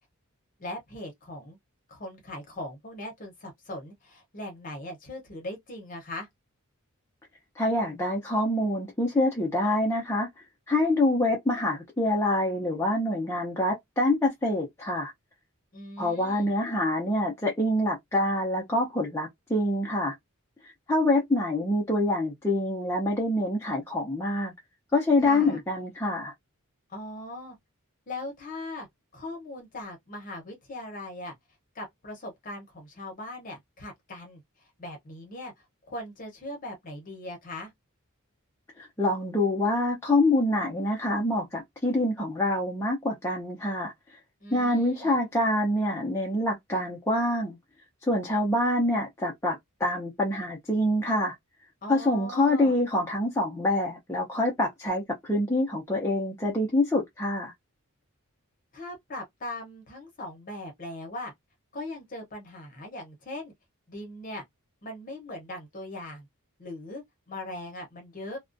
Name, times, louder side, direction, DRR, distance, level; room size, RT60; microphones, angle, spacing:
voice 1, 0.6-1.6 1.9-6.3 15.7-16.5 25.2-25.6 26.9-27.6 28.1-28.9 29.1-31.3 31.7-34.4 34.8-37.7 44.4-45.2 51.8-52.8 58.7-61.3 61.7-63.5 63.9-64.4 64.8-66.3 66.6-68.4, left 1 dB, 40° left, 0.8 m, -39 dB
voice 2, 7.6-10.3 10.7-15.1 16.0-20.1 20.6-24.5 24.9-26.3 38.8-43.9 44.5-47.6 48.1-51.3 51.9-57.5, left 1 dB, 10° left, 0.5 m, -26 dB
2.3 x 2.1 x 2.5 m
head